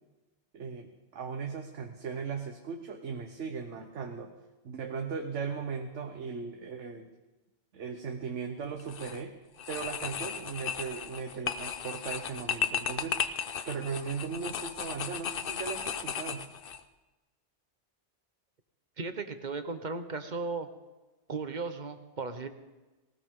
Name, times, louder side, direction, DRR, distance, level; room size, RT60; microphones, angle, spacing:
voice 1, 0.5-4.3 4.6-7.1 7.7-9.3 9.7-13.2 13.6-16.5, right 5 dB, 85° right, 4 dB, 1.3 m, -38 dB
sound 1, 8.8-9.2 9.6-16.8, left 7 dB, 55° left, 0.9 m, -35 dB
voice 2, 19.0-20.7 21.3-22.5, right 4 dB, 45° right, 9 dB, 1.1 m, -36 dB
19.0 x 18.5 x 3.7 m, 1.2 s
omnidirectional pair, 1.2 m